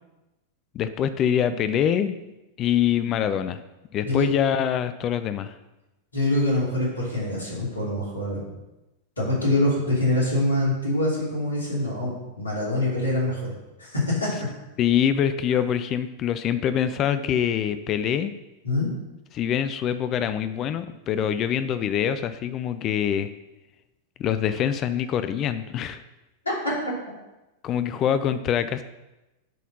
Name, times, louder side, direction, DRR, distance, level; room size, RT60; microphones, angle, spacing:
voice 1, 0.7-2.2 2.6-3.6 3.9-5.6 14.8-18.3 19.3-23.3 24.2-26.0 27.6-28.8, left 9 dB, 35° left, 12 dB, 0.4 m, -24 dB
voice 2, 6.1-8.4 9.2-13.5 13.8-14.5 18.6-18.9 26.4-26.7, left 1 dB, 75° left, -5 dB, 2.8 m, -25 dB
9.1 x 4.2 x 5.4 m, 1.0 s
figure-of-eight pair, 90°, 0 cm